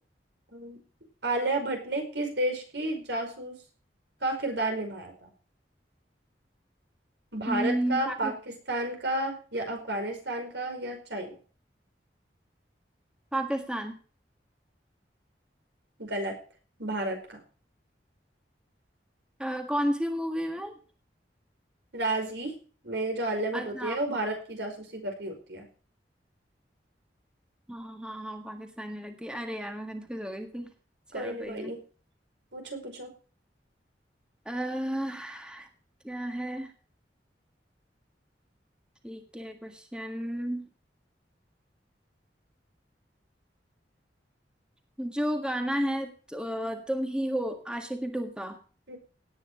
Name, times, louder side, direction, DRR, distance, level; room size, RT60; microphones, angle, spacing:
voice 1, 1.2-3.5 4.2-5.3 7.3-8.3 8.7-11.4 16.0-16.4 16.8-17.4 21.9-22.5 22.8-25.7 31.1-31.8 32.5-33.1 48.9-49.0, right 2 dB, 75° right, 3 dB, 5.2 m, -31 dB
voice 2, 7.5-8.4 13.3-14.0 19.4-20.8 23.5-24.2 27.7-30.7 31.1-31.7 34.5-35.7 36.0-36.7 39.0-40.7 45.0-48.6, equal, 5° right, 5 dB, 1.6 m, -32 dB
18.0 x 9.3 x 3.8 m, 0.39 s
head